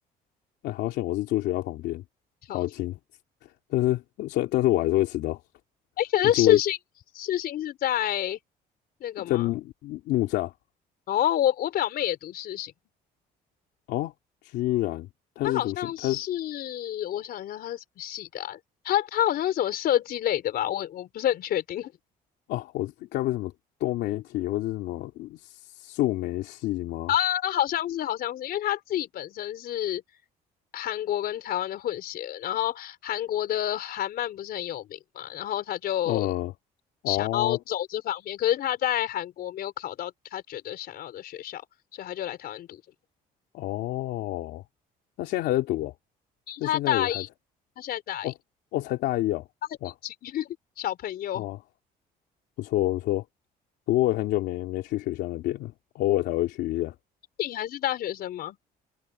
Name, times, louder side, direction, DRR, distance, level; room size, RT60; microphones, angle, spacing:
voice 1, 0.6-2.0 2.5-3.0 3.7-5.4 6.4-6.6 9.3-10.5 13.9-14.1 14.4-15.1 15.4-16.2 22.5-23.5 23.8-27.1 36.0-36.5 37.0-37.6 43.5-44.6 45.2-45.9 46.6-47.2 48.2-48.3 48.7-49.4 49.8-49.9 51.3-51.6 52.6-53.2 53.9-56.9, left 15 dB, 85° left, 3.0 m, -27 dB
voice 2, 6.0-6.8 7.1-8.4 9.0-9.5 11.1-12.7 15.4-18.6 18.8-21.9 27.1-30.0 30.7-36.3 37.1-41.6 41.9-42.8 46.5-47.3 47.8-48.3 50.0-50.5 50.8-51.5 57.4-58.6, left 11 dB, 65° left, 4.6 m, -28 dB
cardioid pair, 110°, 17 cm